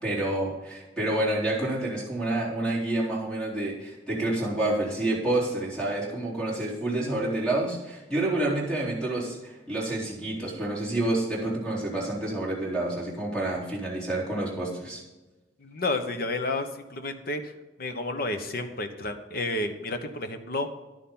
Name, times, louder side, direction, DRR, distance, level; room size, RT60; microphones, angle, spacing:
voice 1, 0.0-15.0, right 1 dB, 5° left, -6 dB, 3.9 m, -28 dB
voice 2, 15.6-17.5 17.8-20.7, left 2 dB, 55° left, 7 dB, 1.1 m, -31 dB
11.0 x 10.0 x 3.9 m, 1.1 s
head